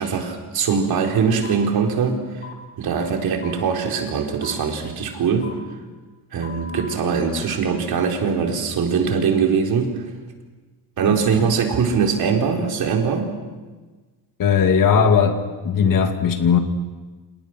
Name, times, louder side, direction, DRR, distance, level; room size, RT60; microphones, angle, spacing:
voice 1, 0.0-2.3 2.8-5.5 6.3-10.0 11.0-13.3, right 6 dB, 55° right, 2 dB, 4.3 m, -22 dB
sound 1, 1.4-1.6 2.4-2.6 3.4-3.5 4.4-4.5 5.4-5.5 6.4-6.9, left 5 dB, 20° left, 2.6 m, -38 dB
voice 2, 14.4-15.4 15.6-16.6, left 6 dB, 45° left, 5 dB, 2.4 m, -17 dB
29.5 x 28.0 x 6.2 m, 1.3 s
cardioid pair, 170°, 43 cm